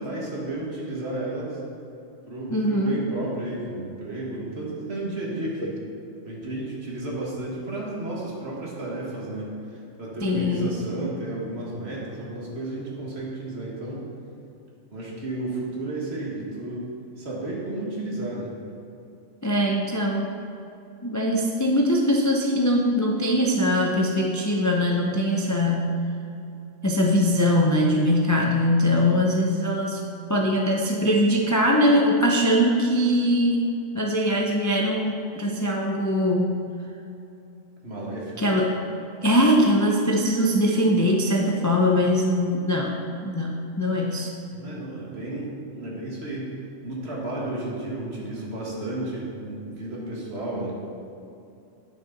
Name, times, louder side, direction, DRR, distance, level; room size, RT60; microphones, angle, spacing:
voice 1, 0.0-1.6 2.3-5.8 6.3-14.1 14.9-16.9 17.2-18.6 37.8-38.3 44.5-46.5 46.8-50.7, right 2 dB, 60° right, -4 dB, 1.8 m, -32 dB
voice 2, 2.5-3.1 10.2-10.8 19.4-20.3 21.0-25.9 26.8-30.0 30.3-33.6 33.9-36.5 38.4-38.8 39.2-43.0 43.2-44.3, equal, 25° left, -1 dB, 0.4 m, -22 dB
9.4 x 6.5 x 3.9 m, 2.7 s
omnidirectional pair, 1.3 m